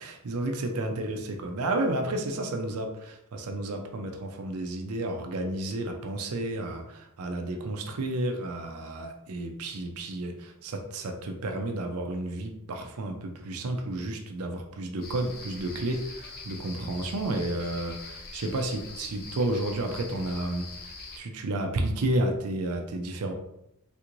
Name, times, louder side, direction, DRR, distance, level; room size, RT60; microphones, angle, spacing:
voice 1, 0.0-23.3, right 1 dB, 75° right, 4 dB, 0.5 m, -31 dB
sound 1, 15.0-21.2, left 3 dB, 45° left, 0.5 m, -43 dB
3.3 x 3.0 x 2.5 m, 0.83 s
head